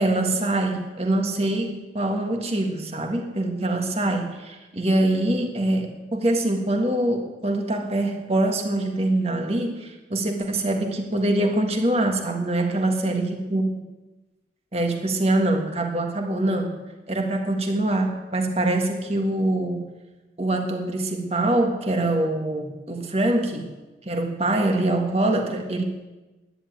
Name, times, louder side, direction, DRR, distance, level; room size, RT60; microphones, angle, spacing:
voice 1, 0.0-13.6 14.7-16.8 17.1-19.8 20.4-23.7 24.0-25.8, right 1 dB, 35° right, 3 dB, 1.7 m, -24 dB
11.0 x 10.5 x 9.4 m, 1.1 s
head